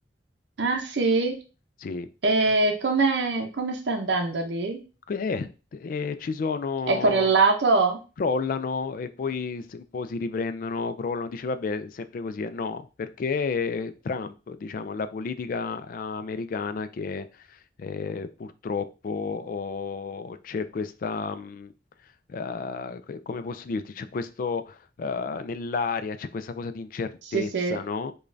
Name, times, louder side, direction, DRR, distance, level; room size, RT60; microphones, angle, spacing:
voice 1, 0.6-1.3 2.2-4.8 6.9-8.0 27.3-27.8, right 3 dB, 85° right, 3 dB, 0.6 m, -23 dB
voice 2, 5.1-7.3 8.2-21.7 22.3-28.1, left 4 dB, 50° left, 11 dB, 0.3 m, -31 dB
4.9 x 2.3 x 2.6 m, 0.33 s
head